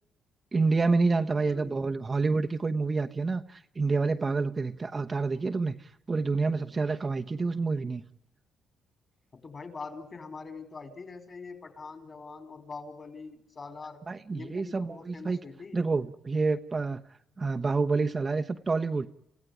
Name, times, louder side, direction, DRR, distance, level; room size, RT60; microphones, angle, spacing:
voice 1, 0.5-8.0 14.1-15.4 15.7-17.0 17.4-19.1, right 3 dB, 30° right, 1.1 m, -28 dB
voice 2, 9.4-15.8, left 4 dB, 35° left, 4.6 m, -43 dB
29.5 x 16.0 x 9.9 m
cardioid pair, 90°, 0 cm